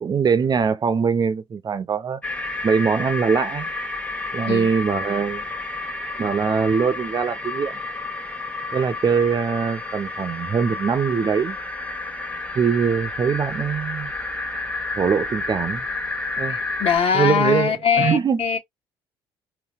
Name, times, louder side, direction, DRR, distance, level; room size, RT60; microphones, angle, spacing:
voice 1, 0.0-2.2 2.6-3.7 4.3-5.5 6.2-7.8 8.7-11.6 12.5-14.1 15.0-15.9 16.4-16.6 17.1-18.4, right 6 dB, 35° right, 0.4 m, -22 dB
sound 1, 2.2-17.0, left 3 dB, 10° left, 0.6 m, -30 dB
voice 2, 16.5-18.6, left 7 dB, 50° left, 1.1 m, -22 dB
3.9 x 2.2 x 2.3 m
hypercardioid pair, 60°, 12 cm